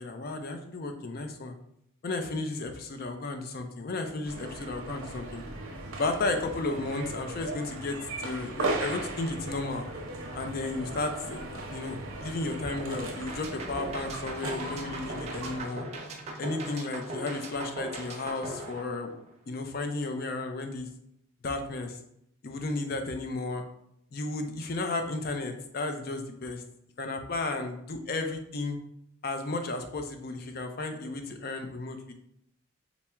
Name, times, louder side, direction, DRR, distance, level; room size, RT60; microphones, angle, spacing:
voice 1, 0.0-1.5 2.0-5.4 6.0-8.0 8.2-9.9 10.3-15.9 16.4-19.1 19.5-20.9 21.4-22.0 22.4-23.6 24.1-26.6 27.0-28.8 29.2-32.1, left 2 dB, 45° left, 6 dB, 0.4 m, -33 dB
sound 1, 4.2-15.6, right 2 dB, 80° right, 0.7 m, -37 dB
sound 2, 11.3-17.3, right 1 dB, ahead, 1.0 m, -52 dB
sound 3, 13.3-19.5, right 2 dB, 30° right, 0.5 m, -39 dB
4.3 x 2.0 x 3.4 m, 0.75 s
head